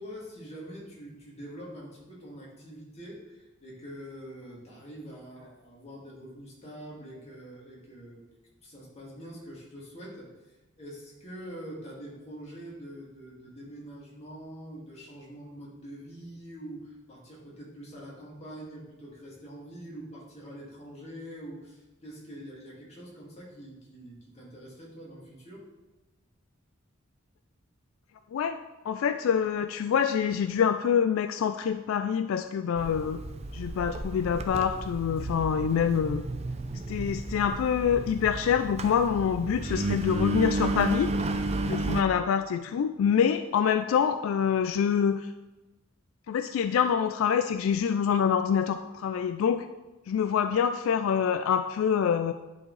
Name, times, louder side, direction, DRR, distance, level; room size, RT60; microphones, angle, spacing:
voice 1, 0.0-8.2 8.6-25.6, equal, 30° left, -5 dB, 2.1 m, -44 dB
voice 2, 28.8-33.2 33.5-36.2 36.9-41.1 41.6-45.3 46.3-49.7 50.1-52.3, left 7 dB, 80° left, 9 dB, 0.3 m, -26 dB
Engine, 32.8-42.0, right 2 dB, 30° right, 0.5 m, -32 dB
10.5 x 4.4 x 3.2 m, 1.1 s
head